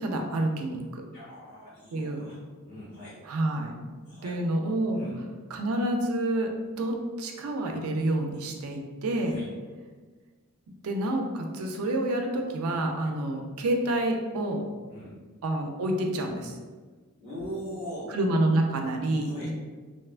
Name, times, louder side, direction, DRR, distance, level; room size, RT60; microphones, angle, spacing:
voice 1, 0.0-1.0 1.9-2.2 3.3-3.7 4.2-5.0 5.5-6.5 6.8-9.4 10.8-14.6 15.4-16.5 18.1-19.5, right 1 dB, 70° right, 3 dB, 0.4 m, -28 dB
voice 2, 1.1-2.4 2.6-3.2 4.0-4.4 4.9-5.2 9.2-9.5 13.0-13.1 14.9-15.2 17.2-18.2 19.2-19.5, equal, 55° left, -14 dB, 1.5 m, -40 dB
2.9 x 2.2 x 2.4 m, 1.4 s
head